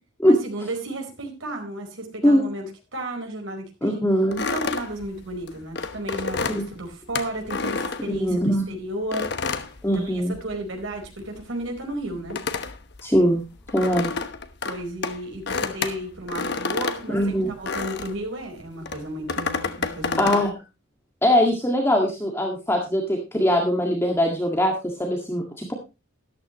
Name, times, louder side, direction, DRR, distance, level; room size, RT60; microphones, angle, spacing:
voice 1, 0.3-4.1 4.5-9.3 9.9-12.4 14.6-17.2 17.5-20.4, right 1 dB, 75° right, 2 dB, 4.5 m, -33 dB
voice 2, 3.8-4.4 6.5-6.6 8.1-8.6 9.8-10.3 13.0-13.4 13.7-14.1 17.1-17.5 20.2-20.5 21.2-25.7, equal, 15° left, 1 dB, 1.9 m, -21 dB
sound 1, 4.3-8.6 9.1-10.6 10.9-18.2 18.8-20.5, left 4 dB, 60° left, 1.1 m, -30 dB
13.5 x 12.0 x 3.0 m, 0.27 s
head